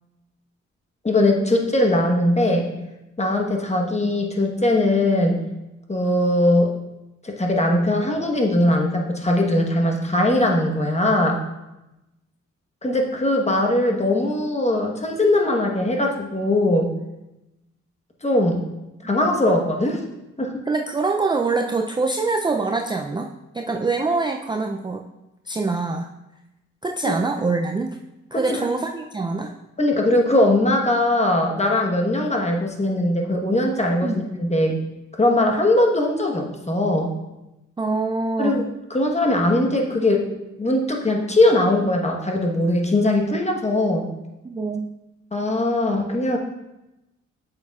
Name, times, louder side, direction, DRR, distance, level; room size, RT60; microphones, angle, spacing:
voice 1, 1.0-2.7 3.2-5.4 5.9-6.7 7.2-11.4 12.8-16.9 18.2-18.6 19.0-20.0 20.4-20.6 27.1-27.2 28.3-28.6 29.8-34.1 34.4-34.8 35.2-37.1 38.4-38.6 38.9-40.2 40.6-44.1 45.3-46.4, left 1 dB, 20° left, 1 dB, 1.2 m, -20 dB
voice 2, 20.7-23.3 23.5-25.0 25.5-26.1 26.8-28.0 28.3-29.5 34.0-34.2 37.8-38.6 44.4-44.9, right 3 dB, 15° right, 2 dB, 0.4 m, -24 dB
8.3 x 6.8 x 2.4 m, 0.96 s
cardioid pair, 85°, 30 cm